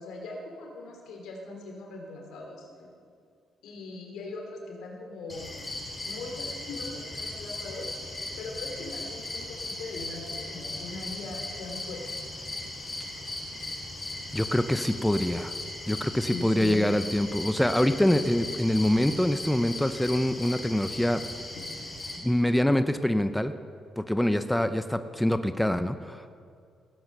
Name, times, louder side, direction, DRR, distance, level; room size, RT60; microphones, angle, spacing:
voice 1, 0.0-2.9 3.6-5.6 6.0-7.9 8.4-12.1 16.3-16.8, left 3 dB, 85° left, 1 dB, 3.1 m, -40 dB
sound 1, 5.3-22.2, left 2 dB, 25° left, 4.7 m, -38 dB
voice 2, 14.3-15.5 15.9-21.2 22.2-23.5 24.0-26.3, left 1 dB, 5° left, 10 dB, 0.6 m, -25 dB
17.0 x 9.6 x 6.7 m, 2.2 s
cardioid pair, 90°, 0 cm